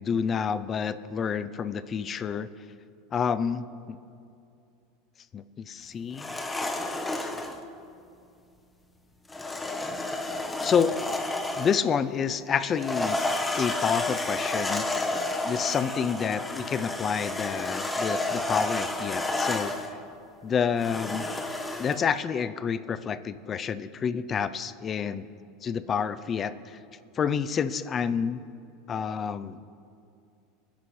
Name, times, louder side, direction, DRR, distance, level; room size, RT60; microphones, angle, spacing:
voice 1, 0.0-2.5 3.1-4.0 5.3-6.3 10.6-10.9 11.6-13.2 13.6-14.8 15.4-19.9 20.4-21.3 21.8-25.3 25.6-26.8 27.2-28.4 28.9-29.6, left 7 dB, 30° left, 13 dB, 0.5 m, -28 dB
sound 1, 6.1-7.6 9.3-11.9 12.7-19.9 20.8-22.0, left 2 dB, 10° left, 1.1 m, -31 dB
26.5 x 10.0 x 3.3 m, 2.6 s
supercardioid pair, 130°, 0 cm